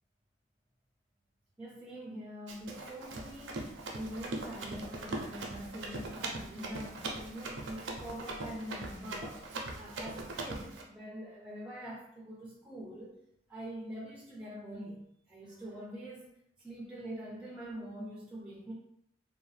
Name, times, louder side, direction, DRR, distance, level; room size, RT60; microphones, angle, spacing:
voice 1, 1.6-9.5 9.7-13.2 13.5-15.0 15.3-16.3 16.6-18.7, equal, 5° right, -4 dB, 0.4 m, -44 dB
Run, 2.5-10.8, right 2 dB, 85° right, 0.5 m, -41 dB
2.6 x 2.1 x 3.2 m, 0.74 s
head